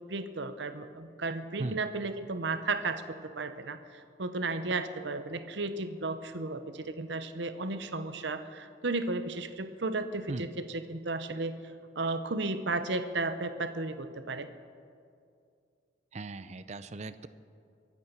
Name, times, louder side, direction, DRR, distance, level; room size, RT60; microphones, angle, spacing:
voice 1, 0.0-11.5 12.0-14.5, right 3 dB, 65° right, 10 dB, 0.9 m, -34 dB
voice 2, 16.1-17.3, right 3 dB, 35° right, 13 dB, 0.5 m, -37 dB
23.0 x 8.5 x 6.7 m, 2.4 s
head